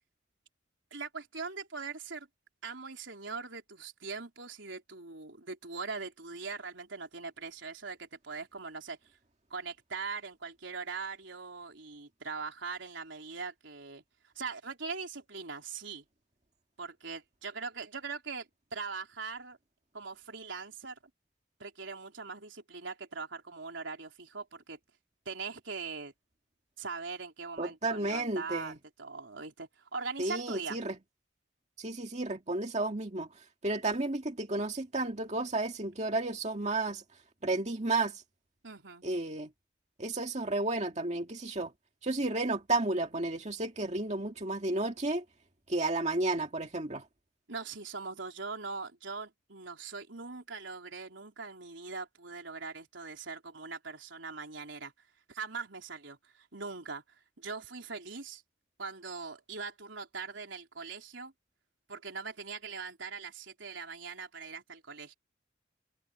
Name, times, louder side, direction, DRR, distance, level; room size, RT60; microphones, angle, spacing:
voice 1, 0.9-2.3 2.6-9.0 9.5-14.0 14.4-16.0 16.8-19.6 19.9-21.0 21.6-24.8 25.3-26.1 26.8-30.8 38.6-39.0 47.5-54.9 55.3-57.0 57.4-58.4 58.8-61.3 61.9-65.1, right 4 dB, 80° right, 3.7 m, -41 dB
voice 2, 27.6-28.7 30.2-31.0 31.8-33.3 33.6-37.0 37.4-38.2 39.0-39.5 40.0-41.7 42.0-45.2 45.7-47.0, right 2 dB, 35° right, 2.1 m, -32 dB
head